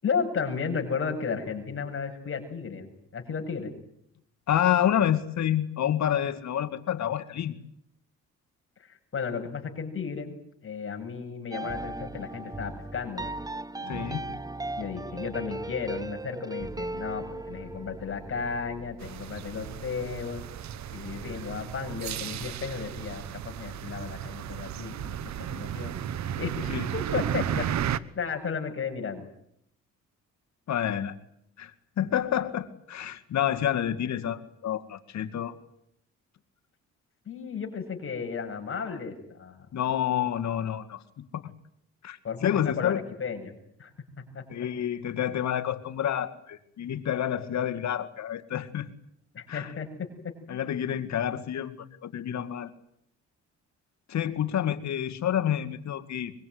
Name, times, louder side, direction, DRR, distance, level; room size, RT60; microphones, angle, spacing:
voice 1, 0.0-3.7 8.8-10.3 10.6-13.2 13.8-14.4 14.8-20.4 20.9-26.0 26.4-26.6 26.9-27.7 28.2-29.3 37.3-39.7 42.2-43.9 44.3-44.4 49.3-49.9 50.2-50.6, left 6 dB, 45° left, 5 dB, 7.4 m, -34 dB
voice 2, 4.5-7.5 13.9-14.2 26.7-26.9 30.7-31.1 31.6-35.5 39.7-41.0 41.3-41.4 42.0-43.0 44.5-48.9 49.5-49.7 50.5-52.7 54.1-56.3, left 10 dB, 65° left, 10 dB, 2.2 m, -28 dB
sound 1, 11.5-20.7, right 2 dB, 10° right, 1.0 m, -38 dB
sound 2, 19.0-28.0, right 10 dB, 65° right, 1.2 m, -34 dB
24.5 x 23.5 x 9.6 m, 0.74 s
cardioid pair, 90°, 30 cm